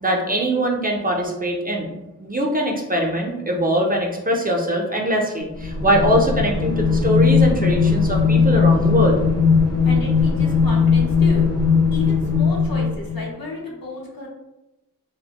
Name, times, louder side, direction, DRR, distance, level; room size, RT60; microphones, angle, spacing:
voice 1, 0.0-1.9 2.2-9.2, right 1 dB, 25° right, 0 dB, 0.4 m, -22 dB
sound 1, 5.6-13.2, left 5 dB, 45° left, 0.6 m, -18 dB
voice 2, 9.8-11.5 11.9-14.3, left 2 dB, 80° left, -2 dB, 0.7 m, -32 dB
2.4 x 2.0 x 2.7 m, 0.96 s
wide cardioid pair, 75°, 35 cm